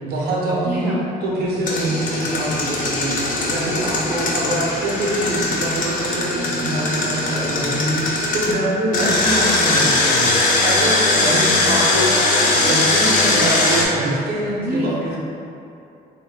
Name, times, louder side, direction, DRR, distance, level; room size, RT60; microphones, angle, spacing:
voice 1, 0.0-0.9 1.2-12.1 12.5-15.2, right 1 dB, 65° right, -4 dB, 0.9 m, -24 dB
voice 2, 0.6-1.0 14.5-15.2, equal, 10° right, -9 dB, 0.5 m, -26 dB
Engine, 1.6-8.5 8.9-13.8, left 2 dB, 50° left, 0.6 m, -20 dB
3.1 x 2.9 x 3.3 m, 2.7 s
cardioid pair, 110°, 17 cm